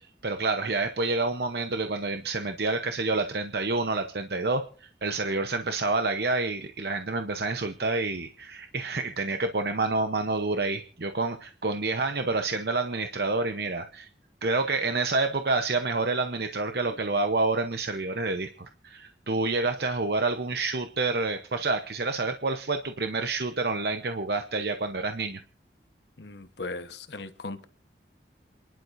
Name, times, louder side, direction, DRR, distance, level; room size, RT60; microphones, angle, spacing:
voice 1, 0.0-14.1 14.4-25.4, right 3 dB, 65° right, 0.9 m, -28 dB
voice 2, 26.2-27.6, left 3 dB, 75° left, 1.2 m, -38 dB
28.0 x 11.5 x 2.7 m
head